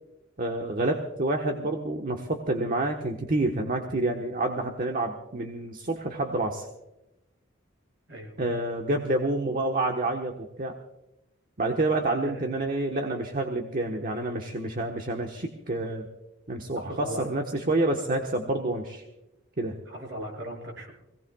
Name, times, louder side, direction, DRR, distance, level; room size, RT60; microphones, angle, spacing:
voice 1, 0.4-6.7 8.4-10.7 11.6-16.1 16.5-19.0 19.6-19.8, right 2 dB, 45° right, 3 dB, 1.3 m, -28 dB
voice 2, 16.7-17.2 19.8-20.9, equal, 65° right, -1 dB, 6.7 m, -37 dB
25.0 x 18.0 x 2.4 m, 0.96 s
head